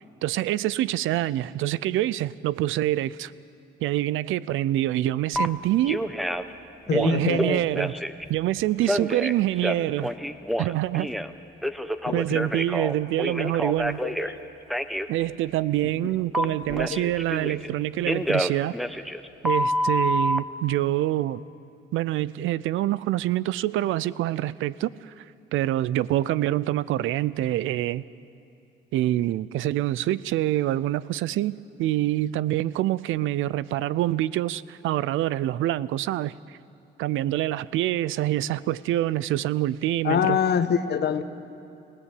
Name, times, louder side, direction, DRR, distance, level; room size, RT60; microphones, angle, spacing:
voice 1, 0.2-3.3 3.8-6.0 6.9-7.9 8.3-10.1 10.6-11.1 12.1-14.0 15.1-18.7 19.4-21.4 21.9-25.2 25.5-28.0 28.9-31.5 31.8-36.6 37.0-40.4, right 14 dB, 85° right, 20 dB, 0.5 m, -26 dB
Telephone, 5.3-5.5 5.9-6.5 6.9-8.2 8.8-11.3 11.6-14.3 14.7-15.1 16.3-17.7 18.1-20.4, equal, ahead, 1.0 m, -27 dB
voice 2, 6.9-7.6 12.0-12.4 14.0-14.4 16.4-16.5 16.9-17.1 40.0-41.2, left 8 dB, 55° left, 10 dB, 1.3 m, -25 dB
30.0 x 17.0 x 8.4 m, 2.6 s
cardioid pair, 90°, 20 cm